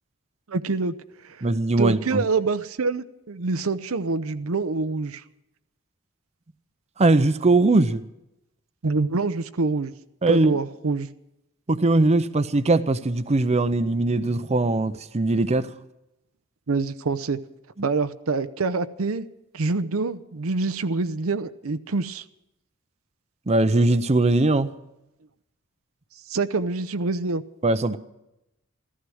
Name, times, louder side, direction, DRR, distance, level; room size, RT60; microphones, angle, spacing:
voice 1, 0.5-1.0 1.2-1.5 1.8-5.2 8.8-9.9 10.3-11.1 16.7-17.4 17.8-19.3 19.5-22.2 26.3-27.4, right 3 dB, 80° right, 0.7 m, -26 dB
voice 2, 1.4-2.2 7.0-8.0 10.2-10.5 11.7-15.7 23.5-24.7 27.6-28.0, right 2 dB, 30° right, 0.6 m, -20 dB
15.0 x 14.0 x 6.3 m
head